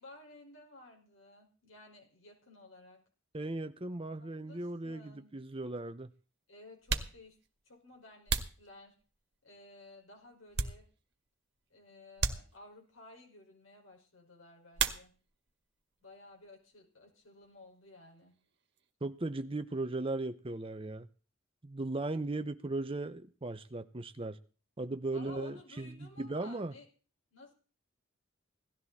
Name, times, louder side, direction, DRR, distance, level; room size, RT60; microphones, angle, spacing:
voice 1, 0.0-3.0 4.2-5.3 6.5-7.4 7.6-9.0 9.4-10.9 11.7-15.1 16.0-18.4 25.1-26.9 27.3-27.5, left 2 dB, 85° left, 1 dB, 5.4 m, -55 dB
voice 2, 3.3-6.1 19.0-21.1 21.6-24.4 24.8-26.7, right 2 dB, 25° right, 10 dB, 0.8 m, -37 dB
sound 1, 5.0-5.1 6.0-6.1 6.7-9.4 9.9-11.3 11.6-11.7 12.2-13.0 14.7-15.5 15.8-16.5 16.7-18.9, right 5 dB, 55° right, 1.9 m, -38 dB
18.0 x 13.5 x 4.2 m, 0.37 s
head